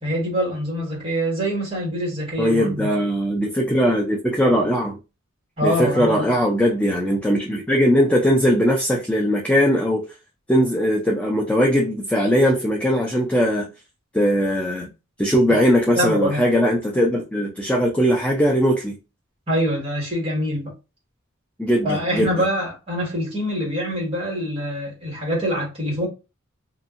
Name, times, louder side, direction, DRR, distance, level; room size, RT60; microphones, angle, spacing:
voice 1, 0.0-2.9 5.6-6.3 15.9-16.4 19.5-20.7 21.8-26.1, equal, 25° right, 1.6 m, -24 dB
voice 2, 2.4-5.0 5.6-10.0 10.5-13.7 14.1-14.9 15.2-19.0 21.6-22.5, equal, 5° left, 0.4 m, -20 dB
2.8 x 2.6 x 2.4 m
head